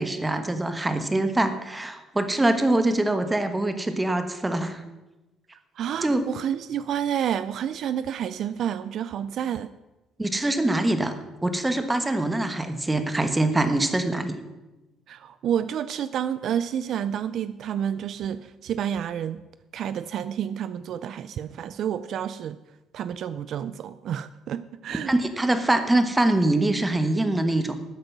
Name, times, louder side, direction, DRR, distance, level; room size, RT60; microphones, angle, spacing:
voice 1, 0.0-4.8 6.0-6.2 10.2-14.4 25.1-27.7, right 2 dB, 10° right, 9 dB, 1.3 m, -24 dB
voice 2, 5.8-9.7 15.1-19.4 19.7-22.6 22.9-25.1, right 9 dB, 60° right, 14 dB, 0.4 m, -29 dB
13.0 x 9.0 x 6.1 m, 1.1 s
cardioid pair, 115°, 0 cm